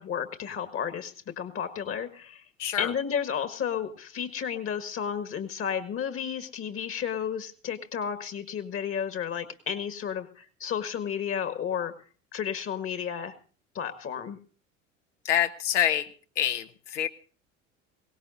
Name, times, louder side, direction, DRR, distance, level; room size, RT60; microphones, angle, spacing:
voice 1, 0.0-2.4 2.8-11.9 12.3-13.3 13.8-14.4, left 8 dB, 35° left, 10 dB, 1.8 m, -32 dB
voice 2, 2.6-2.9 15.2-16.1 16.4-17.1, left 10 dB, 65° left, 8 dB, 1.2 m, -26 dB
22.0 x 18.0 x 2.7 m, 0.39 s
figure-of-eight pair, 70°, 39 cm